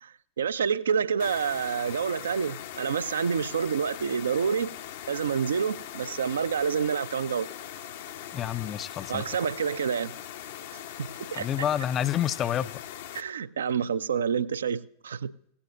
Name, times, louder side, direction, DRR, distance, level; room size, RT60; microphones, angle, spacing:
voice 1, 0.0-4.7 5.1-7.5 9.1-10.1 11.0-11.5 13.1-15.3, right 7 dB, 70° right, 0.5 m, -28 dB
sound 1, 1.2-13.2, left 11 dB, 55° left, 0.7 m, -41 dB
voice 2, 8.3-9.2 11.3-12.7, left 10 dB, 30° left, 0.5 m, -28 dB
17.5 x 15.5 x 2.4 m
figure-of-eight pair, 90°, 0 cm